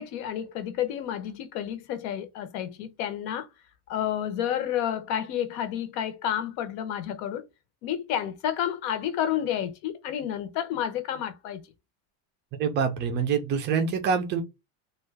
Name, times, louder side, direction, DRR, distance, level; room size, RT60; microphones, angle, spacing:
voice 1, 0.0-3.5 3.9-7.4 7.8-11.6, left 10 dB, 65° left, 0.8 m, -30 dB
voice 2, 12.6-14.4, right 6 dB, 25° right, 0.4 m, -25 dB
2.7 x 2.3 x 3.2 m
cardioid pair, 175°, 43 cm